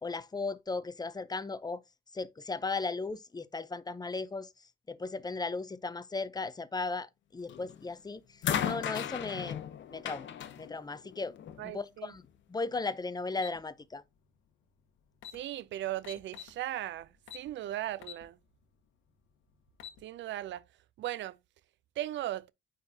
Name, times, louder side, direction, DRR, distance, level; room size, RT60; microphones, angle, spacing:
voice 1, 0.0-1.8 2.1-4.5 4.9-8.2 8.6-9.6 9.9-10.3 10.6-11.4 11.6-12.2 12.5-14.0, left 3 dB, 20° left, 0.5 m, -36 dB
sound 1, 7.5-7.8 8.4-11.7 12.7-12.8, left 9 dB, 70° left, 0.9 m, -36 dB
voice 2, 11.6-12.1 15.3-18.4 20.0-20.6 21.0-21.4 22.0-22.5, right 13 dB, 70° right, 0.4 m, -37 dB
sound 2, 13.4-13.6 14.8-14.9 15.1-15.4 16.0-16.6 17.3-17.5 18.0-18.2 18.7-18.8 19.6-20.0, left 9 dB, 90° left, 1.1 m, -45 dB
9.4 x 3.9 x 2.7 m
cardioid pair, 90°, 20 cm